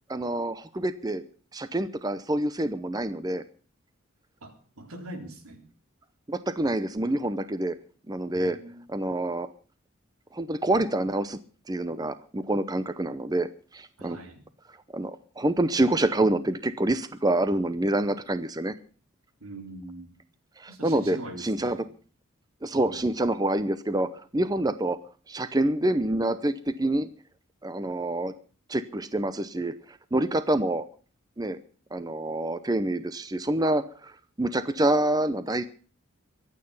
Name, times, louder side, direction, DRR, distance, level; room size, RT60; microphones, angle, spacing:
voice 1, 0.1-1.2 1.5-3.4 6.3-7.8 8.1-8.6 8.9-9.5 10.3-11.4 11.7-14.2 14.7-18.7 20.6-21.9 22.6-25.0 25.3-27.1 27.6-28.3 28.7-30.9 31.4-31.6 31.9-35.7, right 1 dB, 20° right, 13 dB, 0.6 m, -27 dB
voice 2, 4.4-5.6 8.3-8.8 14.0-14.4 19.4-20.2 20.7-21.8 22.7-23.1, right 1 dB, 85° right, 5 dB, 3.6 m, -42 dB
23.5 x 8.8 x 5.4 m, 0.40 s
head